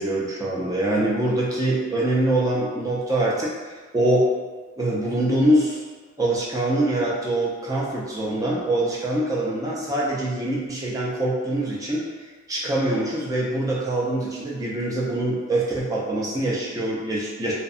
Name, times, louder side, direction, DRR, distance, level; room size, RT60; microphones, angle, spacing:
voice 1, 0.0-4.3 4.8-5.8 6.2-12.1 12.5-17.5, right 1 dB, 15° right, -5 dB, 0.4 m, -24 dB
2.6 x 2.1 x 2.4 m, 1.4 s
head